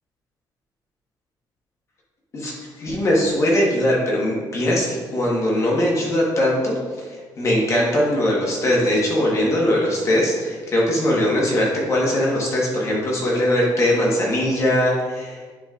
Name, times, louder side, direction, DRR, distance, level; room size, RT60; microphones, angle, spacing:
voice 1, 2.3-15.4, left 1 dB, 40° left, -3 dB, 1.4 m, -21 dB
9.7 x 4.1 x 2.5 m, 1.5 s
cardioid pair, 150°, 8 cm